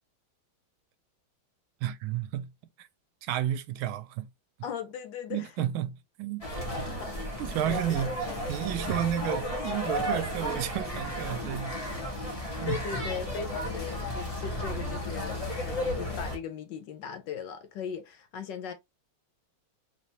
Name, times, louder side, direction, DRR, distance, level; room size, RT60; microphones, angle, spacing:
voice 1, 1.8-2.5 2.8-2.9 3.2-4.3 5.3-5.9 6.2-6.4 7.4-8.1 8.5-11.7 12.6-12.8, right 11 dB, 80° right, 1.4 m, -31 dB
voice 2, 4.6-5.5 6.8-8.4 11.5-11.6 12.4-18.7, left 7 dB, 70° left, 1.2 m, -39 dB
sound 1, 6.4-16.4, equal, 20° left, 1.0 m, -33 dB
4.1 x 3.2 x 2.8 m
omnidirectional pair, 2.2 m